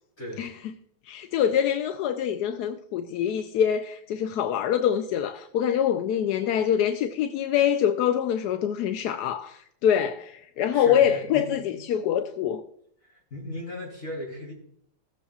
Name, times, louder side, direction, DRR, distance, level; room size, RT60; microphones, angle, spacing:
voice 1, 1.1-12.6, left 9 dB, 70° left, 1.0 m, -25 dB
voice 2, 10.7-11.7 13.0-14.5, left 1 dB, 45° left, 3.9 m, -37 dB
17.5 x 7.0 x 2.4 m
omnidirectional pair, 2.0 m